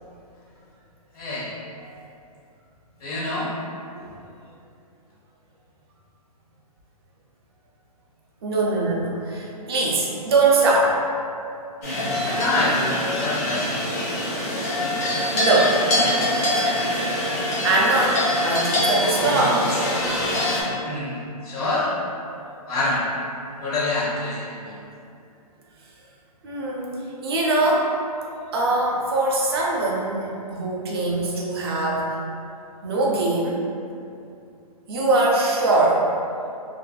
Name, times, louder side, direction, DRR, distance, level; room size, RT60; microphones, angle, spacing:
voice 1, 1.1-1.5 3.0-3.5 12.2-12.8 13.1-13.9 20.7-21.9 22.6-23.0 23.6-24.7, left 2 dB, 65° left, -7 dB, 0.6 m, -26 dB
voice 2, 8.4-10.9 15.3-15.8 17.6-19.7 26.4-26.9 27.2-27.9 28.5-32.1 32.8-33.6 34.9-36.1, right 2 dB, 40° right, -4 dB, 0.4 m, -22 dB
sound 1, 11.8-20.6, left 1 dB, 25° left, 0.4 m, -24 dB
2.5 x 2.4 x 2.2 m, 2.5 s
hypercardioid pair, 155°, 20 cm